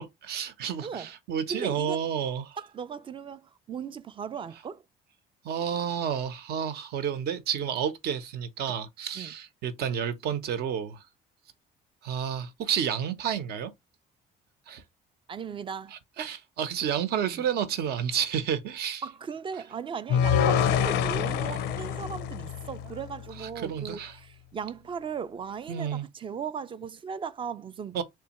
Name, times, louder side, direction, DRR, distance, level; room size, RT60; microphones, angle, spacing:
voice 1, 0.0-2.6 5.4-11.0 12.0-13.7 14.7-14.8 15.9-19.0 20.3-20.6 23.4-24.2 25.7-26.1 27.9-28.0, right 8 dB, 70° right, 0.8 m, -31 dB
voice 2, 1.5-2.0 2.6-4.8 9.1-9.3 15.3-16.0 17.3-17.5 19.0-28.0, right 6 dB, 30° right, 0.4 m, -37 dB
sound 1, 20.1-23.3, left 8 dB, 80° left, 0.5 m, -26 dB
3.6 x 3.2 x 3.0 m
cardioid pair, 110°, 17 cm